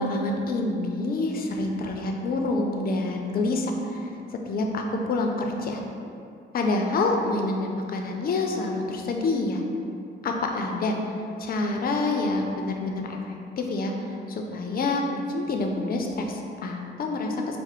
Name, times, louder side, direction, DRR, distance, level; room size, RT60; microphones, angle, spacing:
voice 1, 0.0-5.8 6.5-9.6 10.2-11.0 11.4-15.0 15.3-17.6, left 2 dB, 50° left, 2 dB, 0.5 m, -27 dB
4.2 x 2.1 x 3.6 m, 2.5 s
cardioid pair, 90°, 20 cm